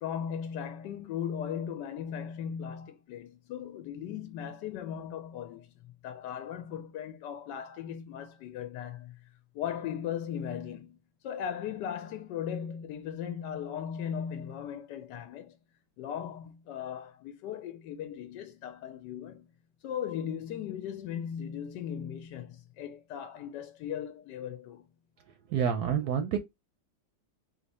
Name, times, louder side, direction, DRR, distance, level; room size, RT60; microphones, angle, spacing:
voice 1, 0.0-5.7 6.0-9.3 9.5-11.0 11.2-15.6 16.0-19.5 19.8-24.9, left 8 dB, 70° left, 1.1 m, -37 dB
voice 2, 25.5-26.4, right 8 dB, 70° right, 1.0 m, -28 dB
4.2 x 2.8 x 4.1 m
omnidirectional pair, 2.1 m